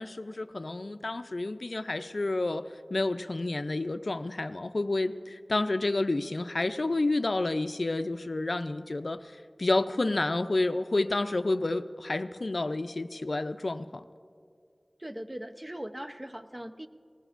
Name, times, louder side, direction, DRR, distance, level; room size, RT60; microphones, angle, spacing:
voice 1, 0.0-2.6 2.9-9.2 9.6-14.0, left 2 dB, 70° left, 11 dB, 0.4 m, -29 dB
voice 2, 15.0-16.9, equal, 25° right, 7 dB, 0.6 m, -40 dB
20.0 x 19.0 x 2.5 m, 2.4 s
wide cardioid pair, 45°, 0 cm